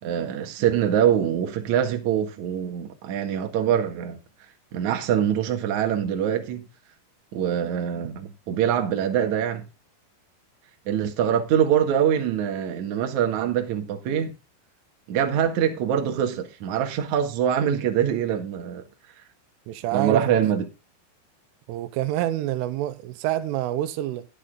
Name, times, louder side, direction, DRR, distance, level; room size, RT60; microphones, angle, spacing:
voice 1, 0.0-4.2 4.7-6.7 7.3-9.7 10.9-14.3 15.1-18.8 19.9-20.6, right 9 dB, 55° right, 2.2 m, -24 dB
voice 2, 19.7-20.4 21.7-24.3, right 14 dB, 85° right, 3.3 m, -27 dB
11.0 x 10.0 x 3.7 m
omnidirectional pair, 5.6 m